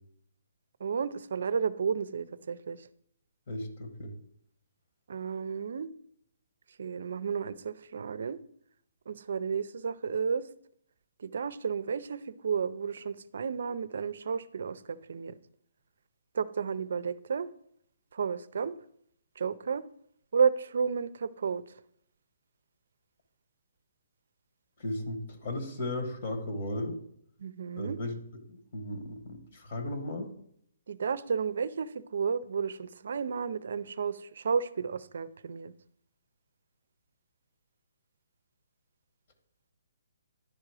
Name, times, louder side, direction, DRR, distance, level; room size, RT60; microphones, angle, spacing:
voice 1, 0.8-2.8 5.1-5.9 6.8-8.4 9.1-10.4 11.2-15.3 16.3-17.5 18.1-18.7 19.4-19.8 20.3-21.6 27.4-28.0 30.9-35.7, right 6 dB, 65° right, 16 dB, 0.4 m, -32 dB
voice 2, 3.5-4.1 24.8-27.0 27.7-28.2 28.5-30.3, left 1 dB, 40° left, 5 dB, 1.2 m, -35 dB
10.0 x 3.7 x 4.8 m, 0.68 s
hypercardioid pair, 165°, 0 cm